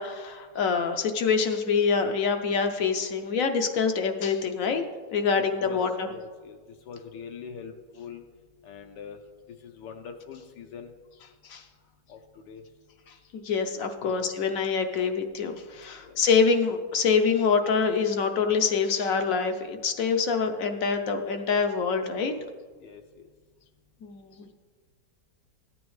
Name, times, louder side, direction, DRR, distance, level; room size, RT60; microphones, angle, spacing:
voice 1, 0.0-6.1 11.4-11.6 13.3-22.3 24.0-24.5, left 5 dB, 60° left, 6 dB, 0.9 m, -25 dB
voice 2, 5.6-8.2 8.6-9.2 9.6-10.9 12.1-12.2 12.5-12.6 14.0-14.2 16.0-16.2 22.3-22.5 22.8-23.3, left 6 dB, 80° left, 4 dB, 1.4 m, -43 dB
14.0 x 9.1 x 3.2 m, 1.5 s
omnidirectional pair, 1.9 m